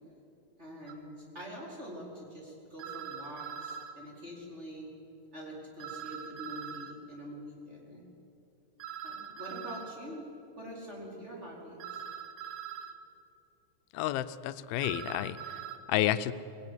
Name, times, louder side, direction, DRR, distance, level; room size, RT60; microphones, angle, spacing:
voice 1, 0.6-4.9 5.3-8.0 9.0-12.0, equal, 15° right, -3 dB, 4.6 m, -45 dB
sound 1, 0.9-1.0 2.8-3.9 5.8-6.9 8.8-9.9 11.8-12.9 14.8-15.8, right 8 dB, 70° right, 2.6 m, -42 dB
voice 2, 13.9-15.4 15.9-16.3, left 13 dB, 85° left, 12 dB, 2.6 m, -30 dB
23.0 x 16.5 x 9.6 m, 2.8 s
omnidirectional pair, 4.3 m